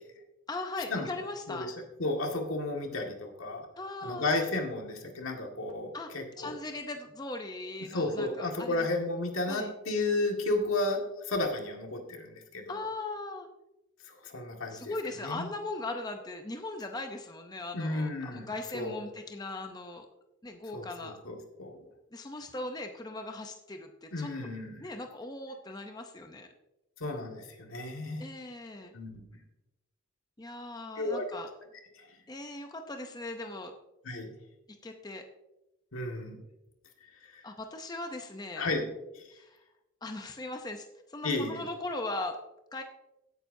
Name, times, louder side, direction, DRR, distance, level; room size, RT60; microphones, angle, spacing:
voice 1, 0.5-1.7 3.8-4.5 5.9-6.1 6.4-8.9 9.5-9.7 12.7-13.5 14.7-20.1 20.4-21.2 22.1-24.3 24.8-26.5 28.2-28.9 30.4-31.5 32.3-33.7 34.8-35.2 37.4-38.7 39.3-39.6 40.0-42.4 42.7-42.8, left 2 dB, 20° left, 5 dB, 0.6 m, -39 dB
voice 2, 2.0-3.7 4.0-6.6 7.9-12.8 14.1-14.9 15.2-15.5 17.7-19.0 20.7-21.8 24.1-24.9 27.0-28.2 28.9-29.2 31.0-31.2 32.0-32.1 34.0-34.3 35.9-36.4 37.3-37.4 38.6-38.8 39.1-39.2 41.2-41.6, left 2 dB, 80° left, 2 dB, 1.8 m, -33 dB
16.5 x 9.1 x 2.7 m, 0.96 s
head